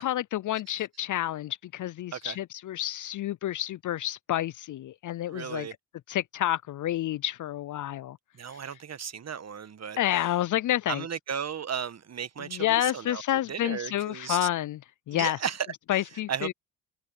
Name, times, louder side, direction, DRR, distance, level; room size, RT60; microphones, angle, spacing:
voice 1, 0.0-5.7 6.1-8.2 10.0-11.0 12.4-14.8 15.1-15.4 15.9-16.5, left 13 dB, 50° left, 0.6 m, -29 dB
voice 2, 5.3-5.7 8.3-10.0 10.9-13.2 13.5-14.5 15.1-15.7 16.3-16.5, right 7 dB, 40° right, 1.5 m, -35 dB
supercardioid pair, 65°, 40 cm